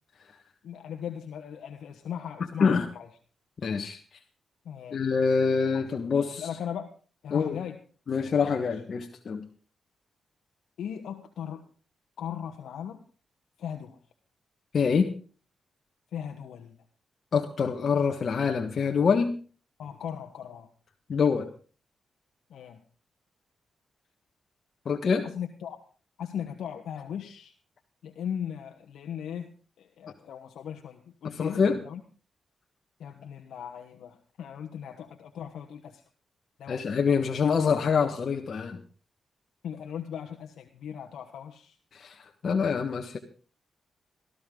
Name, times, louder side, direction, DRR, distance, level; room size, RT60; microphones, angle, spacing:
voice 1, 0.6-3.1 4.6-5.1 5.7-5.9 6.3-6.9 7.2-7.8 8.5-8.6 10.8-11.7 12.2-13.0 13.6-14.0 16.1-16.8 19.8-20.7 22.5-22.8 25.2-25.8 26.2-27.5 28.0-32.0 33.0-36.0 36.6-36.8 39.6-41.8, left 8 dB, 85° left, 5 dB, 1.2 m, -38 dB
voice 2, 3.6-4.0 4.9-6.5 7.3-7.6 8.1-9.4 14.7-15.1 17.3-19.4 21.1-21.5 24.8-25.3 31.2-31.8 36.7-38.8 41.9-43.2, left 5 dB, 60° left, 3 dB, 1.5 m, -25 dB
18.0 x 14.0 x 3.9 m, 0.38 s
cardioid pair, 75°, 0 cm